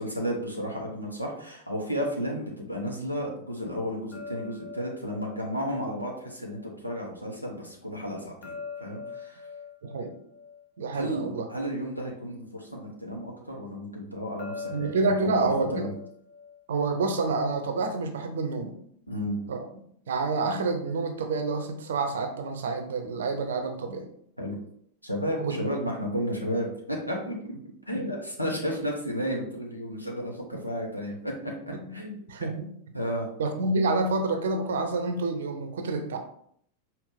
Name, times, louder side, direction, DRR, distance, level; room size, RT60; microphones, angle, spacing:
voice 1, 0.0-9.4 10.9-15.9 19.1-19.4 24.4-24.5 25.0-27.3 27.9-31.5 31.9-32.2 32.9-33.3, equal, 90° left, -1 dB, 0.9 m, -33 dB
sound 1, 4.1-7.2 8.4-11.9 14.4-17.5, left 5 dB, 40° left, 0.6 m, -44 dB
voice 2, 9.8-10.1 10.8-11.5 14.7-15.9 16.7-18.8 19.5-19.6 20.1-24.0 25.4-25.6 27.9-28.0 31.8-32.0 32.3-32.7 33.4-36.2, right 3 dB, 60° right, 6 dB, 0.5 m, -28 dB
5.0 x 2.4 x 3.5 m, 0.67 s
figure-of-eight pair, 90°, 0 cm